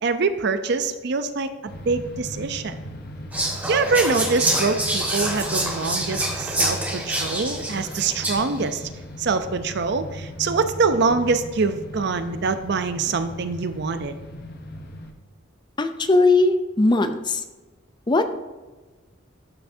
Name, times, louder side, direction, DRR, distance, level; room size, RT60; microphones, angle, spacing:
voice 1, 0.0-2.8 3.7-8.8 9.2-14.1, right 4 dB, 60° right, 10 dB, 0.5 m, -24 dB
sound 1, 1.7-15.1, equal, 50° left, 0.9 m, -37 dB
Whispering, 3.3-8.6, right 1 dB, 10° right, 1.6 m, -26 dB
voice 2, 15.8-17.4 18.1-18.2, left 2 dB, 25° left, 9 dB, 0.5 m, -19 dB
12.5 x 5.7 x 2.7 m, 1.2 s
head